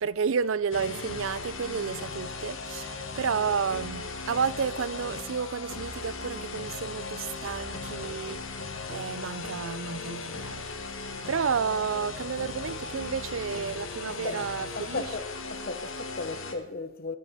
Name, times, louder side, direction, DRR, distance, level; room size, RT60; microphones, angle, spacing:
voice 1, 0.0-15.1, right 6 dB, 80° right, 0.5 m, -31 dB
sound 1, 0.7-16.5, left 3 dB, 85° left, 1.7 m, -37 dB
voice 2, 14.1-14.4 14.7-17.2, left 3 dB, 50° left, 0.9 m, -36 dB
11.5 x 11.0 x 5.7 m
head